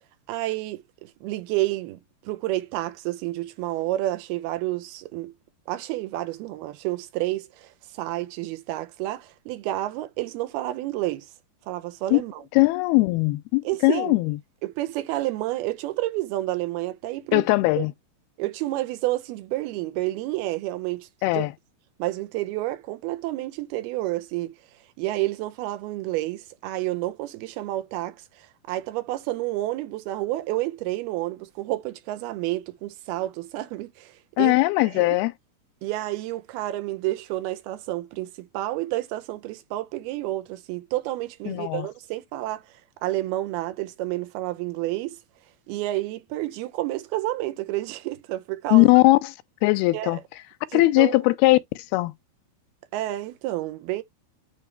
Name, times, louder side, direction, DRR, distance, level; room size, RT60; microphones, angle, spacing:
voice 1, 0.3-5.3 5.7-11.3 11.7-12.4 13.6-14.2 14.6-17.4 17.8-17.9 18.4-21.1 21.3-21.5 22.0-24.5 25.0-28.2 28.7-34.5 34.9-35.1 35.8-42.6 43.0-45.2 45.7-48.9 49.9-50.2 50.7-51.2 52.9-54.0, right 16 dB, 90° right, 2.8 m, -30 dB
voice 2, 12.5-14.4 17.3-17.9 21.2-21.5 34.4-35.3 41.5-41.9 48.7-49.3 49.6-50.2 50.7-52.1, left 21 dB, 85° left, 2.6 m, -20 dB
9.6 x 3.3 x 3.2 m
omnidirectional pair, 4.4 m